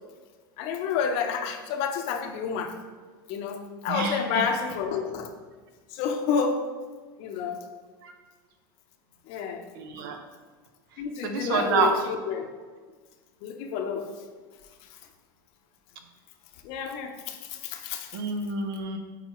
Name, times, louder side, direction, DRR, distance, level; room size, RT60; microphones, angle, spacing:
voice 1, 0.6-2.7 3.3-5.3 5.9-6.7 7.2-7.6 9.3-9.7 11.0-12.5 13.4-14.1 14.8-15.0 16.6-18.2, left 6 dB, 60° left, 5 dB, 0.8 m, -30 dB
voice 2, 3.9-4.4 8.0-8.1 9.7-10.2 11.2-11.9 18.1-19.0, right 5 dB, 75° right, 5 dB, 0.9 m, -27 dB
8.5 x 4.1 x 3.1 m, 1.5 s
supercardioid pair, 115°, 12 cm